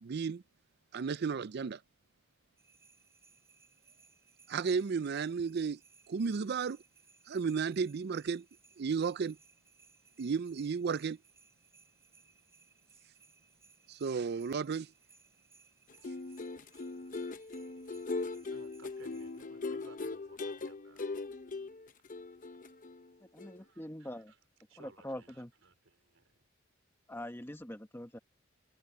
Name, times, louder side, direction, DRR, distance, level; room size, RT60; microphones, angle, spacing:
voice 1, 0.0-0.4 0.9-1.8 4.5-5.8 6.1-6.8 7.3-8.4 8.8-9.4 10.2-11.2 13.9-14.9, right 5 dB, 55° right, 0.4 m, -33 dB
sound 1, 2.6-19.4, right 4 dB, 15° right, 3.5 m, -65 dB
sound 2, 15.9-23.1 23.4-23.6, left 3 dB, 40° left, 0.7 m, -40 dB
voice 2, 18.5-21.1 23.6-24.4 24.7-26.4, right 3 dB, 70° right, 4.9 m, -60 dB
voice 3, 23.3-24.3 24.8-25.5 27.1-28.2, left 1 dB, 10° left, 1.3 m, -43 dB
head